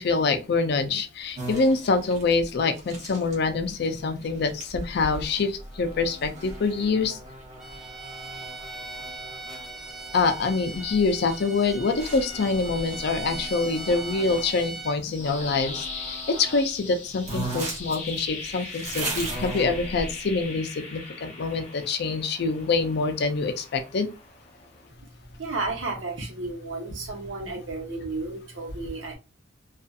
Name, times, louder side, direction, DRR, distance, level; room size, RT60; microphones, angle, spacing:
voice 1, 0.0-7.2 10.1-24.1, left 4 dB, 60° left, 8 dB, 0.4 m, -25 dB
sound 1, 1.4-14.5 15.2-16.6 16.9-17.0 17.2-20.4, right 2 dB, 40° right, 0.9 m, -38 dB
Bowed string instrument, 7.6-15.0, right 2 dB, ahead, 0.5 m, -39 dB
sound 2, 14.8-24.9, left 4 dB, 35° left, 0.8 m, -40 dB
voice 2, 25.4-29.2, right 3 dB, 75° right, 1 dB, 0.9 m, -32 dB
2.6 x 2.4 x 2.4 m, 0.30 s
head